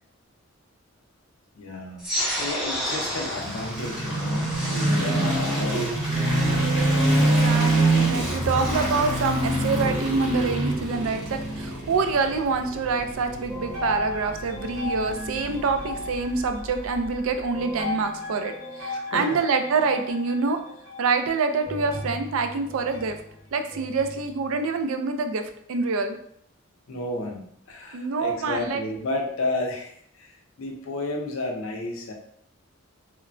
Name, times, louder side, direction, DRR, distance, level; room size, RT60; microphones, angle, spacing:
voice 1, 1.5-2.0 2.4-5.9 18.9-19.4 26.9-27.4 27.7-32.1, left 2 dB, 75° left, 1 dB, 0.5 m, -32 dB
sound 1, 2.0-7.0, equal, 5° right, 0.7 m, -32 dB
sound 2, 3.0-17.1, right 2 dB, 20° right, 1.2 m, -26 dB
voice 2, 7.2-20.6 21.0-23.2 23.5-25.4 25.7-26.2 27.9-28.8, right 4 dB, 80° right, 7 dB, 0.3 m, -26 dB
sound 3, 8.2-12.0 12.3-13.0 13.5-24.8, left 2 dB, 55° right, 1.3 m, -36 dB
3.1 x 2.1 x 2.4 m, 0.66 s
head